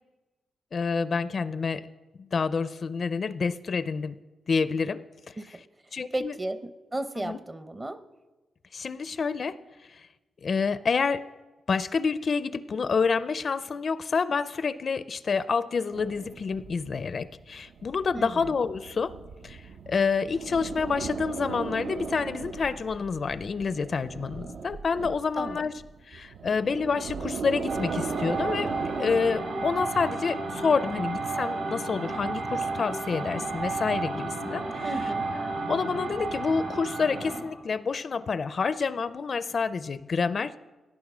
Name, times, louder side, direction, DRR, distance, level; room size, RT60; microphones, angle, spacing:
voice 1, 0.7-1.8 2.2-4.2 4.5-5.0 5.9-6.3 7.2-7.4 8.7-9.6 9.9-10.1 10.4-11.2 11.7-19.1 19.4-25.7 26.1-28.7 29.0-34.9 35.7-40.5, left 5 dB, 45° left, 14 dB, 0.4 m, -28 dB
voice 2, 6.1-8.0 18.1-18.5 25.4-25.7 34.8-35.3, right 1 dB, 20° right, 11 dB, 0.7 m, -34 dB
sound 1, 15.9-29.5, right 5 dB, 65° right, 0.7 m, -38 dB
sound 2, 27.7-37.5, right 3 dB, 90° right, 4.4 m, -32 dB
18.0 x 9.9 x 6.1 m, 1.2 s
wide cardioid pair, 150°, 0 cm